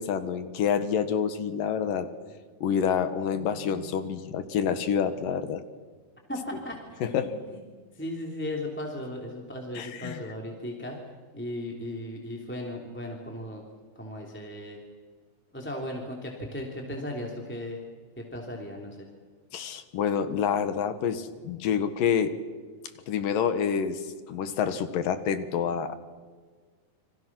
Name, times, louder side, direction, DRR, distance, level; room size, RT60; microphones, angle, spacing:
voice 1, 0.0-2.1 2.6-5.6 7.0-7.3 9.8-10.2 19.5-22.4 23.1-26.0, left 7 dB, 70° left, 10 dB, 3.0 m, -28 dB
Keyboard (musical), 3.2-5.1, right 9 dB, 35° left, 5.8 m, -50 dB
voice 2, 6.3-7.6 7.9-11.0 11.3-13.6 13.9-14.8 15.5-17.8 18.2-19.1, left 1 dB, 5° left, 0 dB, 2.8 m, -36 dB
29.5 x 25.0 x 6.3 m, 1.5 s
omnidirectional pair, 4.3 m